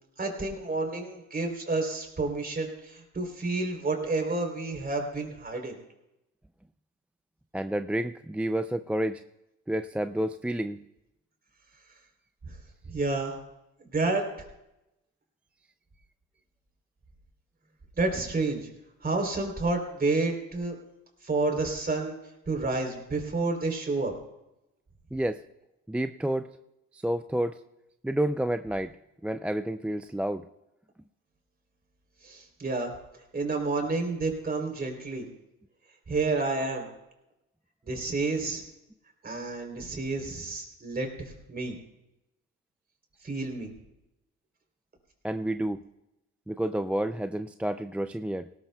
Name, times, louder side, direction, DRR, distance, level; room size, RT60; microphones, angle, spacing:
voice 1, 0.2-5.8 12.5-12.6 12.9-13.4 13.8-14.2 18.0-18.7 19.0-20.8 21.2-22.2 22.5-24.1 32.2-32.9 33.3-35.3 36.1-36.9 37.8-38.6 39.2-41.8 43.2-43.7, right 3 dB, 30° right, 3 dB, 3.5 m, -30 dB
voice 2, 7.5-9.2 9.7-10.8 25.1-25.4 25.9-26.5 26.9-27.6 28.0-28.9 29.2-30.4 45.2-45.8 46.5-48.5, right 1 dB, 5° right, 9 dB, 0.3 m, -29 dB
18.5 x 18.0 x 2.3 m, 0.91 s
cardioid pair, 90°, 30 cm